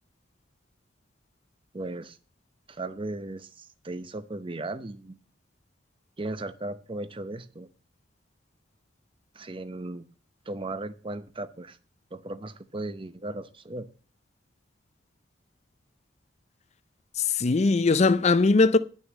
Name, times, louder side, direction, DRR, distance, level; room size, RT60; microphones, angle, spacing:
voice 1, 1.7-2.2 2.7-5.2 6.2-7.7 9.3-10.1 10.5-11.8 12.1-13.9, right 2 dB, 30° right, 0.7 m, -36 dB
voice 2, 17.2-18.8, left 3 dB, 35° left, 0.4 m, -20 dB
9.3 x 6.4 x 8.3 m
head